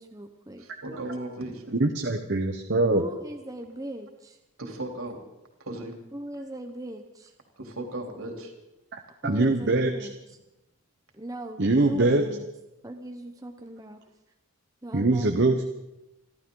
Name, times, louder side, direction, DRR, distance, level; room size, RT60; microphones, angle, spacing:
voice 1, 0.0-0.6 2.9-4.4 6.1-7.3 9.2-10.1 11.1-12.5 12.8-14.0 14.8-15.7, right 1 dB, 15° right, 4 dB, 0.8 m, -39 dB
voice 2, 0.6-1.6 4.6-5.2 5.6-5.9 7.6-8.5, right 1 dB, 70° right, 2 dB, 3.3 m, -36 dB
voice 3, 1.8-3.0 8.9-10.1 11.6-12.2 14.9-15.7, right 2 dB, 50° right, 4 dB, 1.0 m, -23 dB
28.5 x 12.0 x 3.9 m, 0.93 s
head